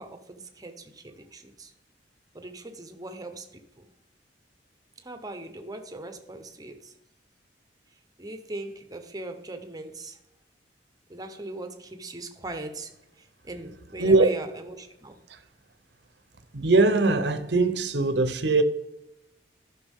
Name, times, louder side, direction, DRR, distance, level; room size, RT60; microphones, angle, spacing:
voice 1, 0.0-1.7 2.3-3.9 5.0-6.9 7.9-10.2 11.1-15.2, right 2 dB, 20° right, 0.9 m, -40 dB
voice 2, 14.0-14.3 15.3-15.4 16.5-18.6, right 3 dB, 70° right, 0.8 m, -21 dB
13.0 x 6.0 x 3.6 m
head